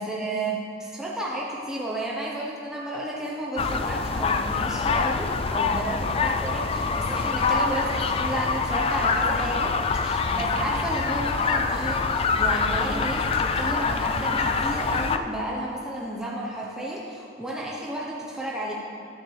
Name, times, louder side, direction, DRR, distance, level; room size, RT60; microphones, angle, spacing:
voice 1, 0.0-18.7, right 1 dB, 5° right, -4 dB, 0.8 m, -32 dB
sound 1, 3.6-15.2, left 4 dB, 30° left, 0.3 m, -25 dB
10.0 x 9.3 x 3.2 m, 2.4 s
head